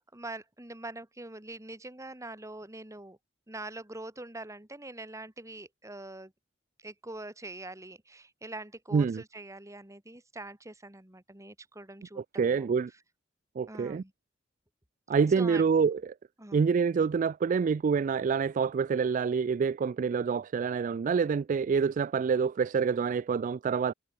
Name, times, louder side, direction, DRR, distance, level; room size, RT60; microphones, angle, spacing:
voice 1, 0.0-3.2 3.5-6.3 6.8-12.7 13.7-14.1 15.4-15.6 16.4-16.6, right 2 dB, 15° right, 2.5 m, -44 dB
voice 2, 8.9-9.2 12.3-12.9 13.6-14.0 15.1-16.1 16.5-23.9, right 6 dB, 40° right, 0.3 m, -27 dB
head